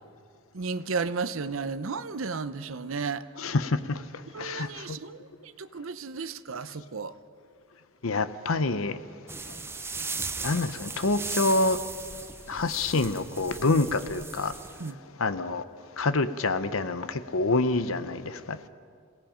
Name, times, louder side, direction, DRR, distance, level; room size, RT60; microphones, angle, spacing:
voice 1, 0.5-3.3 4.3-7.1 14.8-15.0, right 4 dB, 75° right, 0.7 m, -33 dB
voice 2, 3.4-4.0 4.4-4.8 8.0-9.0 10.4-11.8 12.5-14.5 15.2-15.6 16.0-18.7, left 3 dB, 90° left, 0.9 m, -27 dB
sound 1, 9.3-14.9, right 4 dB, 10° right, 0.6 m, -37 dB
28.5 x 17.5 x 5.1 m
head